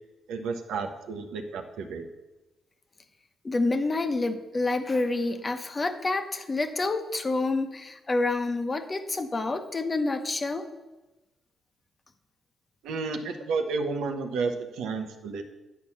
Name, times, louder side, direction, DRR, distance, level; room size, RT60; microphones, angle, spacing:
voice 1, 0.3-2.1 12.8-15.4, right 4 dB, 85° right, 6 dB, 1.0 m, -31 dB
voice 2, 3.4-10.7, left 2 dB, 30° left, 8 dB, 1.1 m, -28 dB
9.4 x 4.6 x 7.2 m, 1.1 s
supercardioid pair, 65°, 0 cm